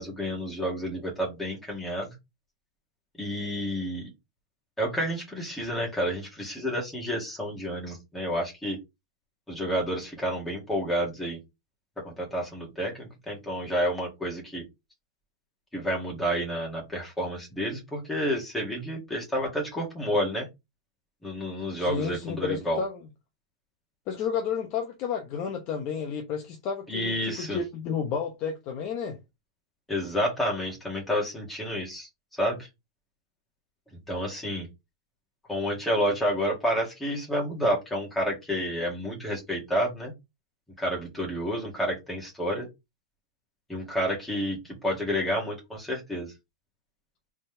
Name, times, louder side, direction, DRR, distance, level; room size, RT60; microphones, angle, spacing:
voice 1, 0.0-2.1 3.2-4.1 4.8-8.8 9.5-11.4 12.0-14.6 15.7-20.5 21.2-22.8 26.9-27.6 29.9-32.7 34.1-34.7 35.5-40.1 40.8-42.7 43.7-46.3, equal, 5° left, 2.2 m, -30 dB
voice 2, 21.8-23.0 24.1-29.2, left 6 dB, 35° left, 0.9 m, -31 dB
4.1 x 3.7 x 3.3 m
supercardioid pair, 155°, 3 cm